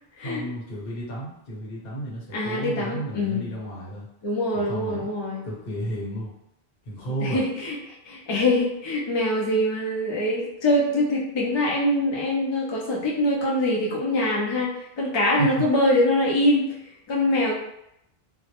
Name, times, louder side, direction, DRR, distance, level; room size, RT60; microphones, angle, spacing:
voice 1, 0.2-4.1 4.5-5.1 5.4-6.3 6.8-7.4 15.4-15.7, right 1 dB, 65° left, -5 dB, 1.0 m, -32 dB
voice 2, 2.3-3.5 4.2-5.4 7.2-16.8 17.1-17.5, left 1 dB, 40° left, -4 dB, 0.4 m, -24 dB
2.2 x 2.0 x 2.8 m, 0.79 s
omnidirectional pair, 1.1 m